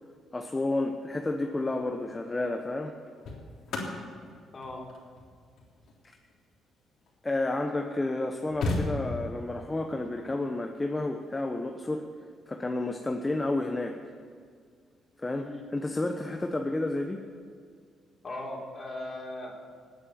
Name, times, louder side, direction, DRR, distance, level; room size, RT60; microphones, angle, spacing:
voice 1, 0.3-3.0 6.0-6.2 7.2-12.1 12.5-14.0 15.2-17.2, left 2 dB, 20° left, 4 dB, 1.1 m, -31 dB
sound 1, 1.6-1.9 2.8-7.4 8.0-8.1 8.2-9.5 11.2-11.4, left 2 dB, 70° left, 3.5 m, -36 dB
voice 2, 4.5-4.8 15.3-15.6 18.2-19.5, left 1 dB, 40° left, 0 dB, 3.7 m, -38 dB
18.5 x 9.0 x 7.7 m, 2.1 s
cardioid pair, 90°, 0 cm